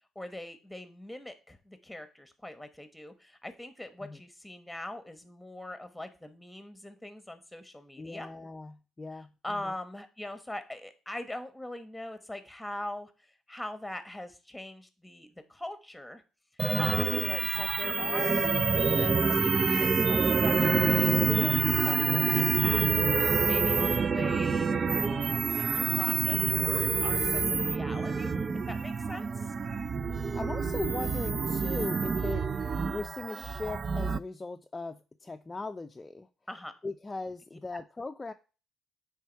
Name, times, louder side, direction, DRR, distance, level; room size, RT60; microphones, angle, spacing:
voice 1, 0.1-8.3 9.4-13.1 13.5-16.2 16.8-18.5 18.8-22.8 23.4-28.3 28.7-29.5 36.5-36.7, left 1 dB, 5° left, 9 dB, 1.2 m, -42 dB
voice 2, 8.0-9.8 16.7-17.1 17.5-17.6 23.4-23.7 24.0-24.1 29.9-36.3 36.8-38.3, left 3 dB, 25° left, 6 dB, 0.5 m, -39 dB
sound 1, 16.6-34.2, right 4 dB, 40° right, 0.4 m, -27 dB
9.2 x 3.5 x 4.6 m, 0.34 s
cardioid pair, 90°, 0 cm